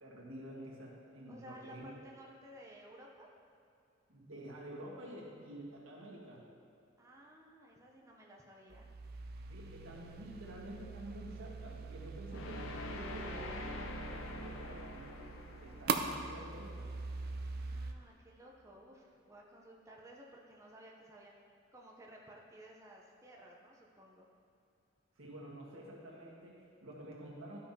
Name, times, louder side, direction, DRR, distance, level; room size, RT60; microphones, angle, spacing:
voice 1, 0.0-1.9 4.1-6.4 9.5-15.1 15.6-16.9 25.2-27.6, right 1 dB, 90° right, -3 dB, 1.6 m, -49 dB
voice 2, 1.3-3.3 7.0-8.9 17.5-21.4 21.7-24.3, equal, 15° right, -2 dB, 0.7 m, -56 dB
sound 1, 8.7-17.9, right 4 dB, 50° right, 0.4 m, -42 dB
sound 2, 12.3-17.4, left 2 dB, 85° left, 0.7 m, -46 dB
12.0 x 5.5 x 2.8 m, 2.6 s
head